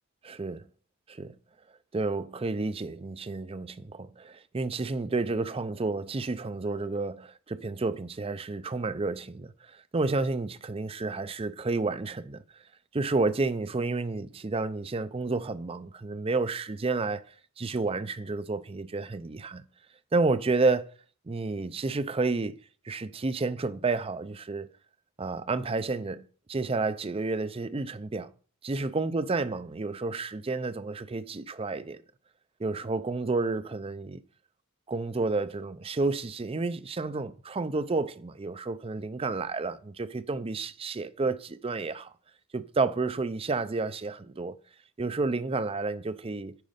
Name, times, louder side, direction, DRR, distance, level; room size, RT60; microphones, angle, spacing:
voice 1, 0.2-0.7 1.1-1.4 1.9-12.4 12.9-17.2 17.6-19.7 20.1-20.9 21.3-22.6 22.8-24.7 25.2-28.3 28.6-32.0 32.6-34.2 34.9-42.1 42.5-44.6 45.0-46.6, right 3 dB, 25° right, 0.4 m, -30 dB
9.2 x 5.3 x 5.1 m
head